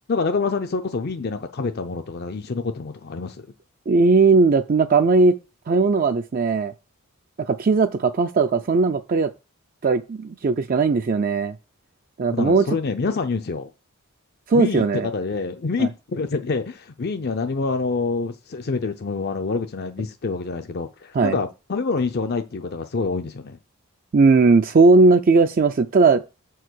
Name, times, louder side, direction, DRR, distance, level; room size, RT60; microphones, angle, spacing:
voice 1, 0.1-3.5 12.3-13.7 14.5-23.6, left 4 dB, 45° left, 0.5 m, -26 dB
voice 2, 3.9-5.3 5.7-6.7 7.5-9.3 9.8-11.5 12.2-12.6 14.5-15.1 15.8-15.9 21.1-21.4 24.1-26.2, right 4 dB, 40° right, 0.4 m, -18 dB
7.4 x 4.7 x 6.2 m
head